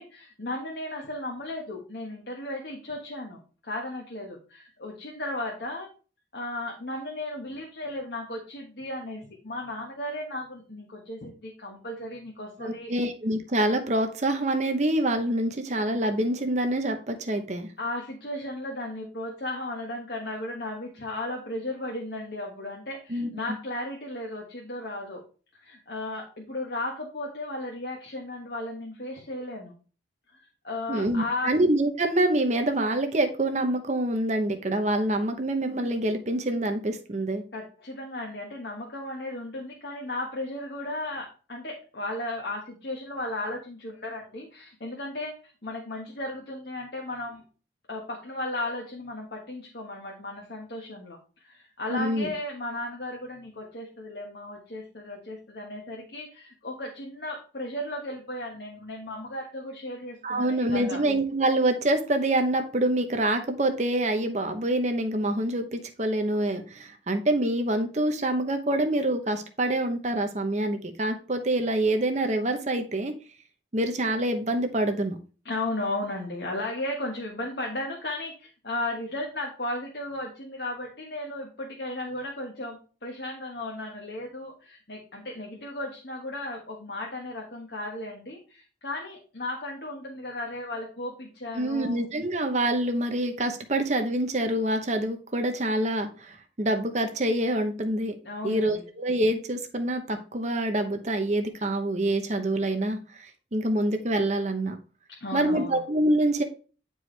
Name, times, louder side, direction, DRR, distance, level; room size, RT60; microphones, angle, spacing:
voice 1, 0.0-5.9 6.3-12.9 17.8-25.2 25.6-29.7 30.6-31.6 37.5-45.4 45.6-47.4 47.9-51.2 51.4-61.0 75.4-92.0 98.2-98.8 105.2-105.8, left 1 dB, 60° left, 0 dB, 1.4 m, -35 dB
voice 2, 12.6-17.7 23.1-23.3 30.9-37.4 51.9-52.3 60.2-73.1 73.7-75.2 91.5-98.2 98.4-104.8 105.3-106.4, right 1 dB, 40° right, 6 dB, 0.8 m, -26 dB
9.5 x 4.6 x 3.3 m, 0.37 s
head